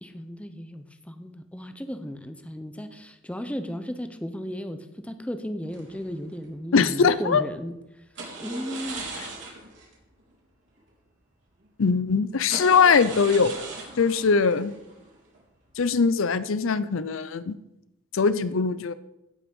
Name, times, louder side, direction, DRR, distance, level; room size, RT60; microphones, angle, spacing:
voice 1, 0.0-4.8 5.0-7.7 8.4-9.0, equal, 5° left, 8 dB, 0.7 m, -35 dB
sound 1, 5.7-6.5 8.1-9.9 10.2-10.3 10.8-10.9 11.6-11.7 12.4-15.6 15.9-16.3, right 3 dB, 65° right, 3.5 m, -39 dB
voice 2, 6.7-7.4 9.2-9.3 11.8-13.5 14.0-14.7 15.8-17.6 18.1-18.9, left 5 dB, 70° left, 15 dB, 0.5 m, -21 dB
16.5 x 6.0 x 5.4 m, 0.90 s
head